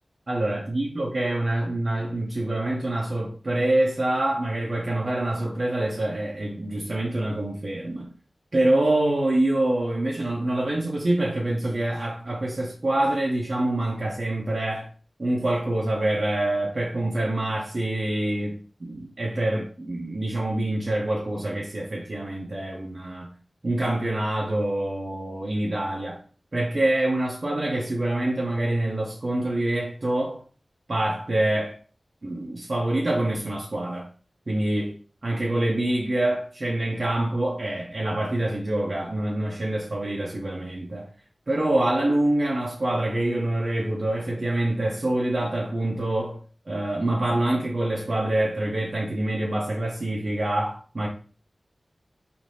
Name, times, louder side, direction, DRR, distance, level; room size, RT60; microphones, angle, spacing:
voice 1, 0.3-8.1 8.5-14.9 15.2-23.3 23.6-26.2 26.5-30.4 30.9-31.8 32.2-34.1 34.5-41.1 41.5-51.1, right 1 dB, 60° right, 0.5 m, -26 dB
3.1 x 2.5 x 2.6 m
wide cardioid pair, 70°, 0 cm